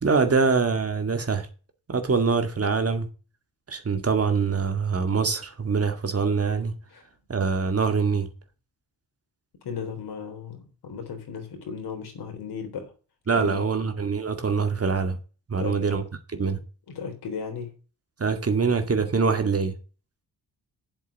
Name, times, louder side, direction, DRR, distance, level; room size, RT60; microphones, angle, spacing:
voice 1, 0.0-1.5 1.9-3.1 3.7-6.8 7.3-8.3 13.3-15.2 15.5-16.6 18.2-19.7, right 5 dB, 35° right, 2.0 m, -24 dB
voice 2, 9.6-12.9 13.3-13.7 15.6-15.8 16.9-17.7, left 6 dB, 75° left, 3.7 m, -35 dB
7.8 x 7.5 x 8.2 m
cardioid pair, 75°, 40 cm